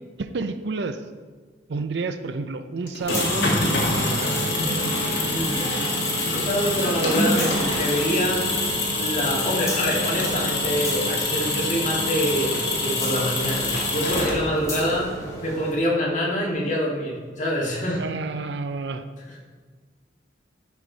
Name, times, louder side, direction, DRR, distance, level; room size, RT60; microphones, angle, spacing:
voice 1, 0.2-1.0 1.7-4.4 18.0-19.0, right 3 dB, 70° right, 9 dB, 0.5 m, -30 dB
sound 1, 2.9-14.7, left 2 dB, 65° left, 1.8 m, -25 dB
sound 2, 3.0-15.7, left 1 dB, 15° left, 1.4 m, -36 dB
sound 3, 4.1-16.5, right 10 dB, 35° right, 1.2 m, -38 dB
voice 2, 5.2-5.7 6.2-8.4 9.0-15.1 15.4-18.1 19.3-19.4, equal, 45° left, -4 dB, 2.0 m, -26 dB
11.5 x 5.0 x 4.0 m, 1.5 s
head